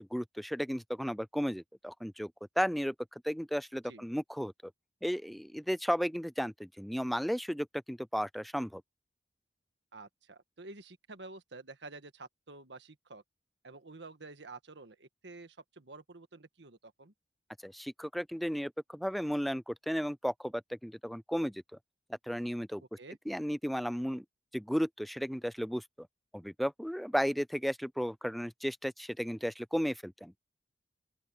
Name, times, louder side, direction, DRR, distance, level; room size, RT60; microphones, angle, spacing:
voice 1, 0.0-2.3 2.6-2.9 3.2-4.5 5.0-8.8 17.6-21.6 22.3-22.8 23.3-24.2 24.5-26.1 26.3-30.3, equal, ahead, 0.4 m, -34 dB
voice 2, 9.9-13.2 13.6-17.1 23.0-23.2, right 3 dB, 80° right, 1.6 m, -50 dB
open air
head